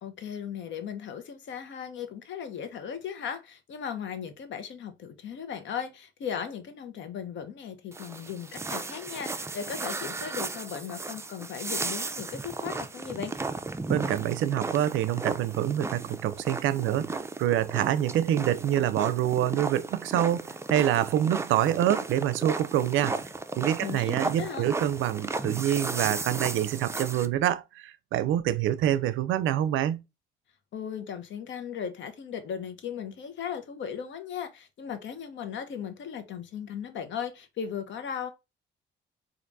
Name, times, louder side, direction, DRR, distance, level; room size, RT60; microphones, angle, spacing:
voice 1, 0.0-13.3 23.8-24.7 30.7-38.3, left 8 dB, 70° left, 0.9 m, -37 dB
sound 1, 7.9-27.3, right 3 dB, 15° right, 0.4 m, -35 dB
voice 2, 13.9-23.2 23.6-30.0, right 11 dB, 80° right, 0.4 m, -26 dB
4.5 x 2.5 x 2.5 m
cardioid pair, 90°, 20 cm